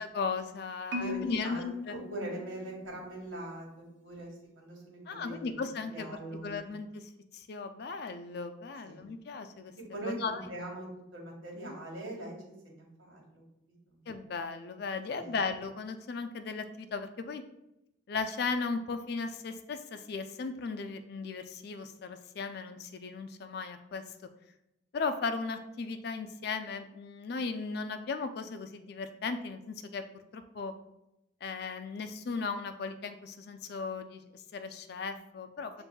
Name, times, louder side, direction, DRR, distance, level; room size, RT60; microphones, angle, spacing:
voice 1, 0.0-2.0 5.1-6.1 6.4-9.7 10.2-10.4 11.6-11.8 14.1-17.4 18.1-24.0 24.9-30.0 30.3-30.7 31.4-35.8, left 4 dB, 55° left, 9 dB, 0.4 m, -36 dB
Marimba xylophone, 0.9-3.1, left 3 dB, 60° right, 0.5 m, -39 dB
voice 2, 1.0-6.7 8.8-9.1 9.8-13.4 13.9-14.0 15.1-15.3 35.8-35.9, right 1 dB, 90° right, -1 dB, 1.4 m, -42 dB
7.6 x 2.6 x 2.2 m, 0.87 s
head